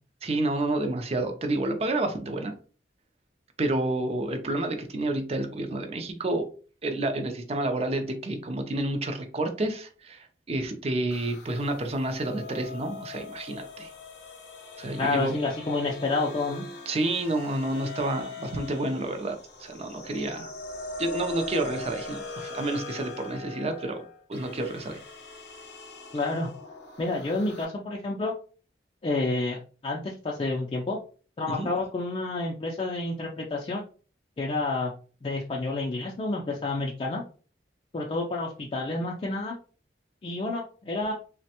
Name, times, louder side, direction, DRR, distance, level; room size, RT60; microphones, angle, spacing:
voice 1, 0.2-2.5 3.6-6.5 6.8-13.9 14.8-15.3 16.9-20.5 21.0-24.0 24.3-25.0 31.5-31.7, right 2 dB, 35° right, 6 dB, 0.4 m, -29 dB
sound 1, 11.1-27.6, left 3 dB, 75° left, 0.7 m, -41 dB
voice 2, 15.0-16.7 26.1-26.5 27.0-28.3 29.0-31.0 31.4-33.8 34.4-34.9 35.2-37.2 37.9-39.6 40.2-41.1, left 2 dB, 30° left, -2 dB, 0.3 m, -29 dB
3.3 x 2.1 x 2.8 m, 0.39 s
head